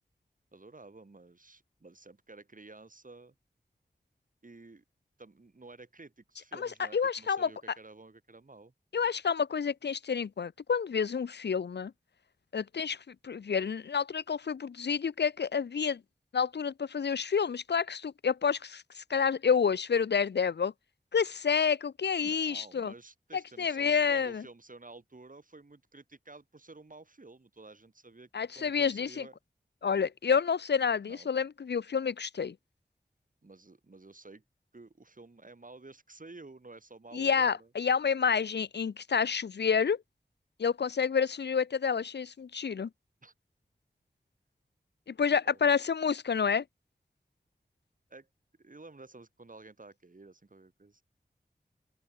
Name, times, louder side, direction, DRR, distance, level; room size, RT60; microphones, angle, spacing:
voice 1, 0.5-3.3 4.4-4.8 5.2-8.7 22.2-28.3 28.5-29.4 31.0-31.3 33.4-34.4 34.7-37.7 43.2-43.3 45.4-45.6 48.1-48.3 48.6-51.0, right 3 dB, 50° right, 4.6 m, -52 dB
voice 2, 6.6-7.5 8.9-11.9 12.5-16.0 16.3-20.7 21.1-22.9 23.6-24.4 28.3-29.3 29.8-32.5 37.1-40.0 40.6-42.9 45.1-46.6, left 6 dB, 90° left, 0.6 m, -29 dB
open air
wide cardioid pair, 60°, 17 cm